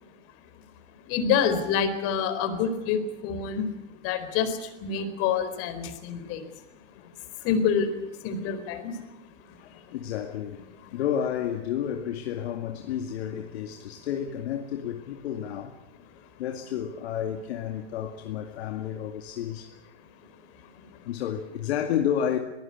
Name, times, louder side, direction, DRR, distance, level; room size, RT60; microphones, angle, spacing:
voice 1, 1.1-3.6 4.0-4.5 4.8-6.4 7.4-7.9 8.2-8.8, left 7 dB, 40° left, 4.3 m, -26 dB
voice 2, 9.6-15.8 16.4-19.7 21.0-22.4, left 9 dB, 60° left, 2.2 m, -31 dB
23.0 x 18.0 x 8.5 m
hypercardioid pair, 120°, 36 cm